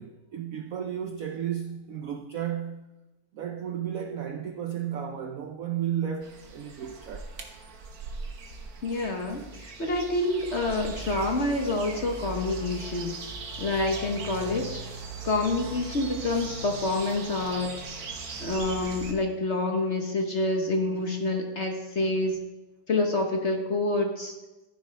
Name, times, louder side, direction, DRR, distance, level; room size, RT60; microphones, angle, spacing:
voice 1, 0.0-2.9 3.3-7.3 15.8-15.9 21.0-21.1, right 9 dB, 85° right, 0.7 m, -33 dB
sound 1, 6.2-19.1, right 4 dB, 50° right, 1.5 m, -39 dB
voice 2, 8.8-13.1 13.6-14.8 15.2-17.8 18.4-22.4 22.9-24.3, left 2 dB, 45° left, 1.0 m, -27 dB
14.0 x 10.0 x 3.3 m
omnidirectional pair, 2.3 m